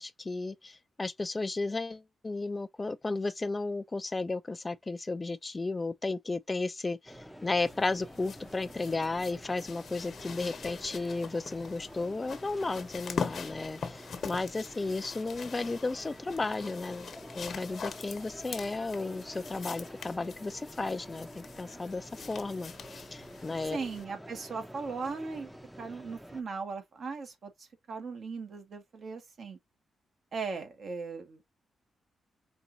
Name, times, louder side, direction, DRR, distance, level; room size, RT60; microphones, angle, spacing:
voice 1, 0.0-23.8, left 3 dB, 25° left, 0.6 m, -34 dB
sound 1, 7.1-26.4, equal, 5° right, 0.8 m, -49 dB
sound 2, 7.6-24.0 25.0-25.1, left 6 dB, 60° left, 1.0 m, -43 dB
voice 2, 23.7-25.5 25.8-29.6 30.3-31.4, right 4 dB, 55° right, 1.7 m, -38 dB
5.3 x 2.6 x 2.7 m
cardioid pair, 85°, 0 cm